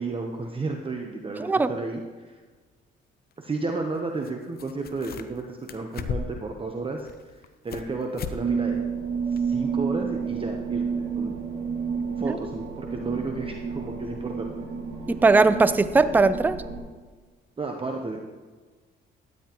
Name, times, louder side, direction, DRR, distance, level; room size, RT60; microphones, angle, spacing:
voice 1, 0.0-2.4 3.4-7.3 7.6-8.8 9.3-11.3 12.2-14.5 17.6-18.2, right 3 dB, 25° right, 2 dB, 0.9 m, -32 dB
voice 2, 1.4-1.7 12.2-12.4 15.1-16.6, right 3 dB, 10° right, 13 dB, 0.4 m, -19 dB
sound 1, 2.5-2.6 4.2-4.3 4.6-5.4 5.7-6.5 7.0-7.9 8.2-8.4 8.7-8.8 9.4-9.5, left 6 dB, 50° left, 0.7 m, -35 dB
sound 2, 8.4-16.8, right 6 dB, 65° right, 2.3 m, -30 dB
12.5 x 9.7 x 3.0 m, 1.4 s
cardioid pair, 90°, 20 cm